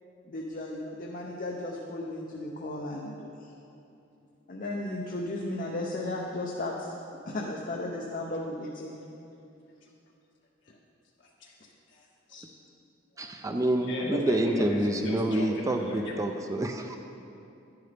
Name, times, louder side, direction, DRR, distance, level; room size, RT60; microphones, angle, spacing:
voice 1, 0.2-3.5 4.5-7.0 7.3-9.0, left 1 dB, 45° left, -1 dB, 0.7 m, -35 dB
voice 2, 11.9-12.5 13.8-16.1, left 1 dB, 60° left, -3 dB, 1.8 m, -36 dB
voice 3, 13.2-17.0, right 1 dB, 15° right, 5 dB, 0.4 m, -28 dB
11.0 x 10.5 x 3.4 m, 2.7 s
head